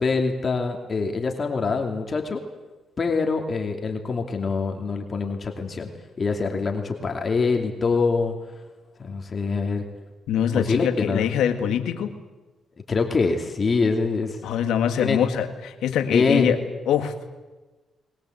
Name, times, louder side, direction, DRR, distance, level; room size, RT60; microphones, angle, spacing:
voice 1, 0.0-2.4 3.0-5.9 6.2-8.3 9.0-9.8 10.5-11.3 12.9-14.4 15.0-15.2 16.1-16.5, left 4 dB, 45° left, 3 dB, 2.7 m, -24 dB
voice 2, 10.3-12.2 14.4-16.6 16.9-17.3, left 9 dB, 80° left, 7 dB, 2.0 m, -24 dB
22.5 x 19.5 x 8.0 m, 1.2 s
supercardioid pair, 65°, 0 cm